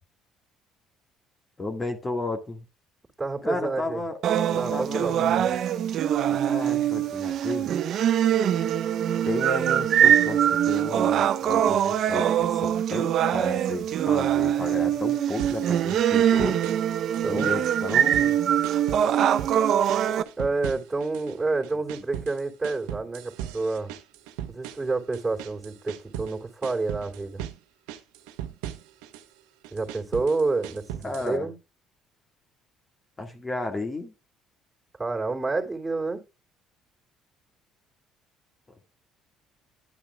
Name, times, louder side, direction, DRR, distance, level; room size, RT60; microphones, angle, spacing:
voice 1, 1.6-2.6 3.4-4.2 4.5-5.4 6.3-7.7 9.2-16.6 17.3-18.4 31.0-31.5 33.2-34.1, left 2 dB, 25° left, 1.9 m, -33 dB
voice 2, 3.2-4.0 4.5-5.6 17.2-17.6 20.4-23.9 24.5-27.4 29.7-31.5 35.0-36.2, right 3 dB, 15° right, 3.0 m, -29 dB
sound 1, 4.2-20.2, right 10 dB, 60° right, 0.8 m, -23 dB
sound 2, 15.4-16.9 17.1-18.4 18.6-19.6 19.9-21.3 21.6-26.3 26.6-27.6 27.9-29.2 29.6-31.3, right 11 dB, 85° right, 0.9 m, -38 dB
11.0 x 8.7 x 2.4 m
supercardioid pair, 75°, 0 cm